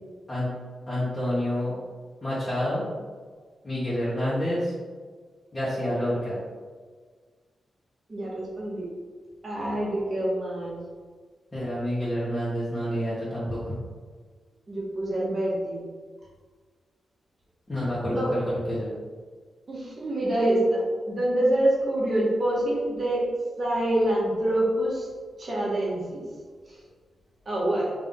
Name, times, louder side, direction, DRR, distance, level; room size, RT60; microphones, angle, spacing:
voice 1, 0.9-1.7 2.2-2.9 3.6-4.7 5.5-6.4 11.5-13.8 17.7-18.9, equal, 25° left, -10 dB, 1.3 m, -28 dB
voice 2, 8.1-8.8 9.4-10.8 14.7-15.8 18.0-18.3 19.7-23.3 23.6-25.1 25.4-26.2 27.4-27.9, right 1 dB, 40° right, -5 dB, 1.5 m, -26 dB
3.9 x 3.0 x 3.7 m, 1.5 s
cardioid pair, 90°, 0 cm